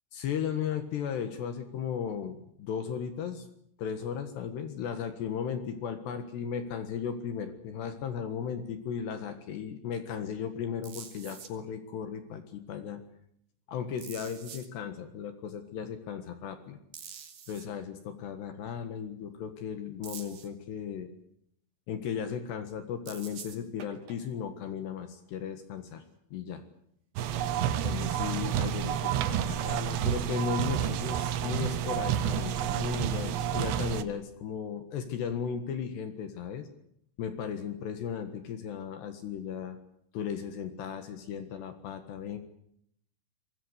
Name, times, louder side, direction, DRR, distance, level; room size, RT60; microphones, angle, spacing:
voice 1, 0.1-3.5 3.8-13.0 13.7-16.8 17.5-21.1 21.9-26.0 26.3-26.6 27.8-36.7 37.2-39.8 40.1-42.4, left 7 dB, 65° left, 9 dB, 3.5 m, -36 dB
sound 1, 10.8-11.5 14.0-14.7 16.9-17.7 20.0-20.5 23.1-24.2 26.6-26.7, right 8 dB, 50° right, 3.8 m, -46 dB
sound 2, 27.2-34.0, right 10 dB, 70° right, 3.1 m, -30 dB
25.0 x 20.5 x 8.2 m, 0.70 s
omnidirectional pair, 5.6 m